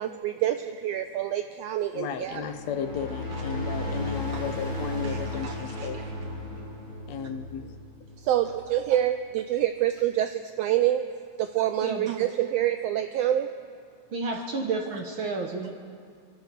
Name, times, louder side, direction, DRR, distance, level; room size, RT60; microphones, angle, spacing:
voice 1, 0.0-2.5 4.3-4.4 5.0-6.0 8.2-11.0 11.4-13.5, right 12 dB, 85° right, 9 dB, 1.4 m, -27 dB
voice 2, 1.9-6.1 7.1-7.8, left 7 dB, 75° left, 8 dB, 1.9 m, -34 dB
sound 1, 2.2-8.8, left 1 dB, 15° right, 3.6 m, -35 dB
voice 3, 14.1-15.7, right 3 dB, 60° right, 2 dB, 1.4 m, -30 dB
29.0 x 11.0 x 4.6 m, 2.2 s
omnidirectional pair, 3.3 m